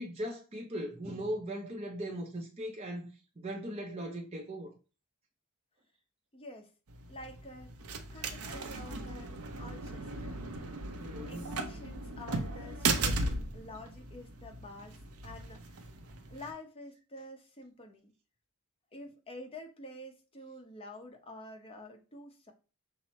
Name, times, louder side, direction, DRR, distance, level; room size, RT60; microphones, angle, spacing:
voice 1, 0.0-3.1 3.4-4.7 11.0-11.4, equal, 30° right, 0.6 m, -38 dB
voice 2, 6.3-6.7 7.1-7.7 8.1-10.4 11.0-15.9 16.3-18.1 18.9-22.5, left 1 dB, 25° left, 0.8 m, -48 dB
sound 1, 6.9-16.5, right 3 dB, 75° right, 0.6 m, -37 dB
6.0 x 2.0 x 4.2 m
head